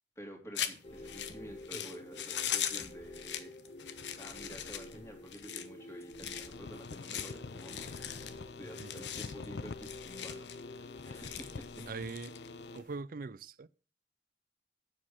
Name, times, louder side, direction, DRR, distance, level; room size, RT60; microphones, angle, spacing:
voice 1, 0.2-3.5 4.2-11.9, equal, 15° left, 2.6 m, -50 dB
sound 1, 0.5-12.9, left 10 dB, 85° left, 1.0 m, -41 dB
sound 2, 0.8-12.8, left 1 dB, 35° left, 1.2 m, -50 dB
sound 3, 6.5-12.8, left 4 dB, 70° left, 0.5 m, -47 dB
voice 2, 11.9-12.3 12.7-13.7, right 4 dB, 50° right, 0.5 m, -42 dB
8.6 x 7.5 x 6.4 m
head